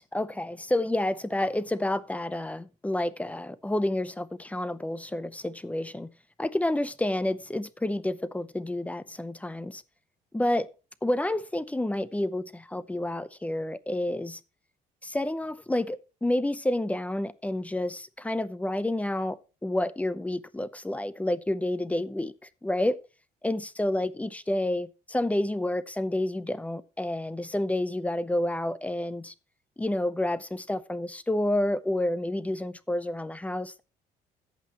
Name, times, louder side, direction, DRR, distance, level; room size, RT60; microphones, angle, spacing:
voice 1, 0.0-6.1 6.4-9.8 10.3-10.7 11.0-14.4 15.0-19.4 19.6-22.3 22.6-23.0 23.4-29.3 29.8-33.8, left 1 dB, 10° left, 0.7 m, -29 dB
14.0 x 8.3 x 3.0 m
cardioid pair, 110°, 17 cm